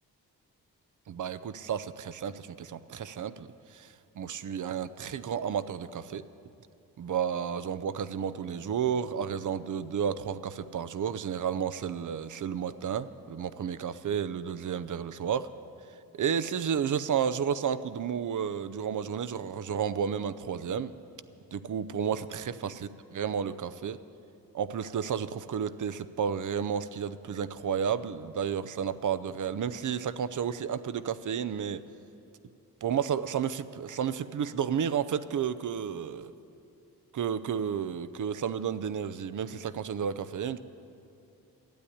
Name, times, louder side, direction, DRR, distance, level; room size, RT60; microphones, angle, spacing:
voice 1, 1.1-6.2 7.0-15.5 16.1-20.9 21.5-24.0 24.5-31.8 32.8-36.3 37.1-40.6, right 8 dB, 55° right, 14 dB, 0.7 m, -32 dB
12.5 x 8.4 x 10.0 m, 2.7 s
cardioid pair, 60°, 37 cm